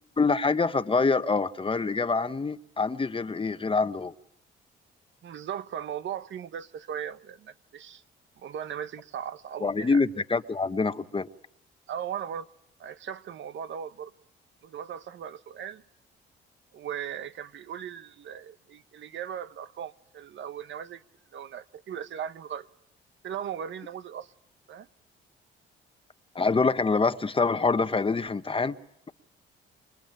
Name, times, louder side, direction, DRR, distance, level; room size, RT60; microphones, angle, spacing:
voice 1, 0.2-4.1 9.6-11.3 26.3-28.7, left 4 dB, 25° left, 1.2 m, -25 dB
voice 2, 5.2-8.0 8.4-10.0 11.9-12.5 12.8-14.1 14.6-15.8 16.7-21.0 21.3-22.7 23.2-24.3 24.7-24.9, right 9 dB, 60° right, 1.2 m, -38 dB
28.0 x 23.0 x 9.0 m
cardioid pair, 85°, 21 cm